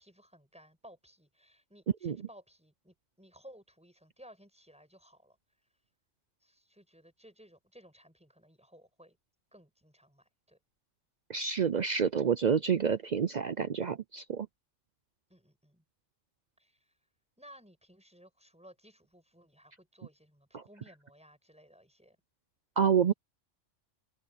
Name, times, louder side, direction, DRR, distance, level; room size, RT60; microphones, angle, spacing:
voice 1, 0.0-5.4 6.4-9.2 9.5-10.6 15.3-15.8 16.6-16.9 17.4-22.2, equal, 5° right, 6.9 m, -58 dB
voice 2, 11.3-14.5 20.5-20.6 22.8-23.1, right 7 dB, 55° right, 0.5 m, -28 dB
open air
omnidirectional pair, 1.3 m